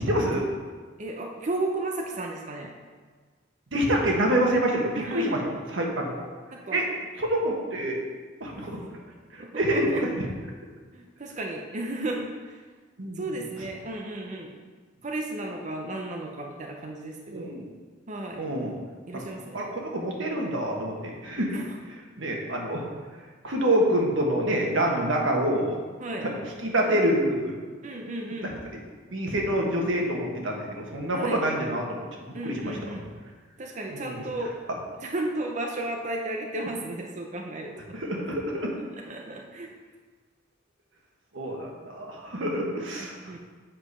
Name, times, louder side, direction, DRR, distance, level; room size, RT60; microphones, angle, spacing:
voice 1, 0.1-0.4 3.7-6.2 6.7-6.8 7.2-8.1 8.4-9.0 9.3-10.3 13.0-13.2 17.3-17.7 18.3-18.7 19.1-19.3 19.5-21.6 22.2-22.9 23.4-25.7 26.2-26.3 26.6-27.5 28.4-28.5 29.1-32.0 32.4-32.8 33.9-34.2 37.9-38.7 41.3-43.1, right 1 dB, 90° right, 0 dB, 1.4 m, -26 dB
voice 2, 1.0-2.7 4.9-5.3 6.5-6.8 9.4-10.0 10.9-12.6 13.2-14.6 15.0-17.5 18.1-18.5 19.1-19.7 21.5-21.7 26.0-26.3 27.8-28.5 31.1-31.4 32.3-33.1 33.6-34.6 35.0-38.0 38.9-39.7 43.2-43.4, right 2 dB, 40° right, 1 dB, 0.6 m, -34 dB
7.5 x 5.0 x 5.6 m, 1.5 s
head